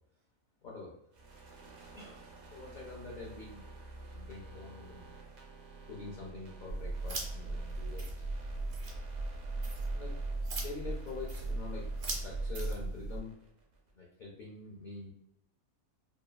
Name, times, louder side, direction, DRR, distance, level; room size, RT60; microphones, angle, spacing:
voice 1, 0.6-0.9 1.9-2.2 2.5-3.6 4.1-5.1 5.9-8.2 9.9-10.1 10.6-11.9 12.2-13.3 13.9-15.1, left 4 dB, 85° left, -3 dB, 0.4 m, -45 dB
sound 1, 1.1-13.9, right 3 dB, 90° right, 0.4 m, -53 dB
sound 2, 5.2-12.6, right 3 dB, 65° left, 1.4 m, -65 dB
sound 3, 6.7-13.2, right 2 dB, 65° right, 1.0 m, -37 dB
2.9 x 2.2 x 2.2 m, 0.76 s
omnidirectional pair, 1.5 m